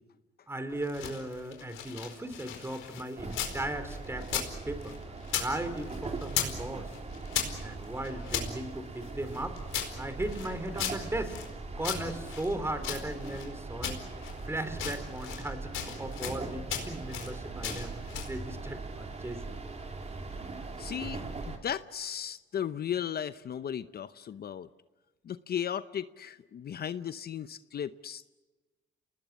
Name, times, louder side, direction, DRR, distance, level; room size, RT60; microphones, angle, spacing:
voice 1, 0.5-5.0 5.3-6.9 7.6-9.6 10.0-11.4 11.8-14.0 14.5-18.0 18.3-19.6, right 1 dB, 15° right, 10 dB, 3.6 m, -37 dB
sound 1, 0.7-3.6 3.9-5.5 5.8-6.6 6.9-8.5 9.0-11.5 11.8-13.5 13.8-14.4 14.7-15.5 15.7-16.4 16.7-17.3 17.6-18.4, left 9 dB, 80° left, 4.6 m, -36 dB
sound 2, 3.2-21.6, right 3 dB, 35° right, 3.5 m, -40 dB
voice 2, 20.8-24.7 25.2-28.2, left 9 dB, 50° left, 13 dB, 0.8 m, -36 dB
29.0 x 19.5 x 8.3 m, 1.2 s
cardioid pair, 90°, 20 cm